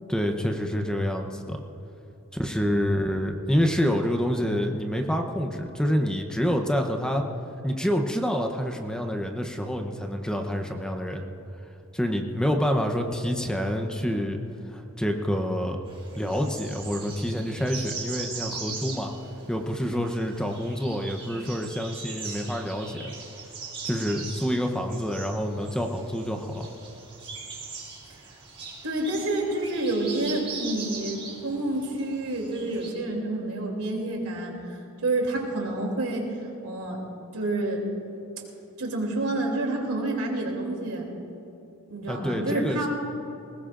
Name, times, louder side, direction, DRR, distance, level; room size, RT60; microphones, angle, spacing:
voice 1, 0.1-1.6 2.4-7.2 7.6-11.2 11.9-14.4 14.7-15.8 16.1-19.1 19.5-23.1 23.8-26.7 42.1-42.9, equal, 5° left, 3 dB, 0.8 m, -27 dB
sound 1, 15.9-32.9, right 4 dB, 25° right, 3.3 m, -40 dB
voice 2, 28.8-36.3 36.6-37.0 37.3-37.8 38.8-41.1 41.9-42.9, right 2 dB, 80° right, 0 dB, 2.9 m, -28 dB
21.0 x 19.0 x 2.5 m, 2.9 s
head